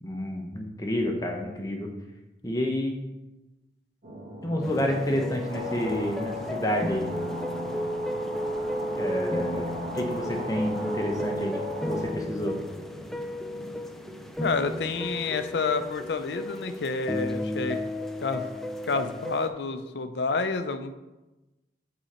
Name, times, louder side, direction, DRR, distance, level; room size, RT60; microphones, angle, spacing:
voice 1, 0.0-1.9 2.4-2.9 4.4-7.1 8.9-11.6 11.9-12.6, left 1 dB, 20° left, 1 dB, 0.9 m, -29 dB
sound 1, 4.0-14.3, right 1 dB, 45° right, 1.2 m, -41 dB
sound 2, 4.6-19.5, left 1 dB, ahead, 0.3 m, -33 dB
sound 3, 5.5-12.1, right 1 dB, 90° right, 1.8 m, -39 dB
voice 2, 14.4-17.8 18.2-18.5 18.9-21.0, left 4 dB, 70° left, 10 dB, 0.5 m, -29 dB
8.0 x 3.8 x 4.3 m, 1.1 s
head